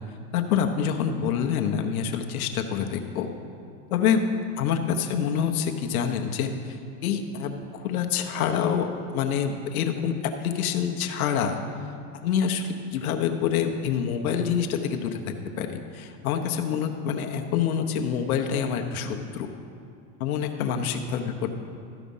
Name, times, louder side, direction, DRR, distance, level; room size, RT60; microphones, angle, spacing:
voice 1, 0.3-3.3 3.9-4.2 4.6-11.6 12.2-15.2 15.6-19.5 20.2-21.5, left 7 dB, 90° left, 4 dB, 0.9 m, -26 dB
13.0 x 5.0 x 5.4 m, 2.4 s
supercardioid pair, 130°, 42 cm